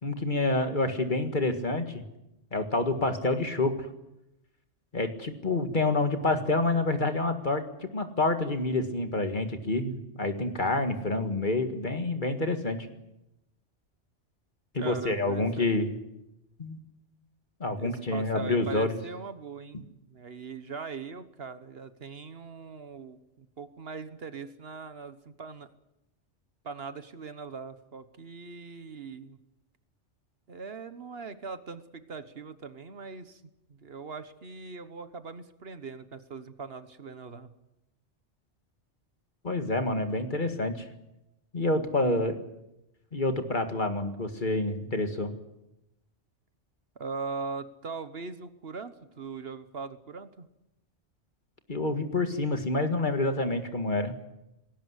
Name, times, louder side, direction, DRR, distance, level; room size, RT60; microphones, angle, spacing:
voice 1, 0.0-2.0 2.5-3.9 4.9-12.9 14.7-15.9 16.6-16.8 17.6-19.0 39.4-40.8 41.5-42.4 43.1-45.3 51.7-54.1, left 2 dB, 45° left, 7 dB, 2.0 m, -28 dB
voice 2, 14.7-15.7 17.8-25.7 26.6-29.4 30.5-33.4 33.7-37.5 46.9-50.5, right 4 dB, 60° right, 11 dB, 1.4 m, -40 dB
19.5 x 17.5 x 9.7 m, 0.93 s
omnidirectional pair, 1.2 m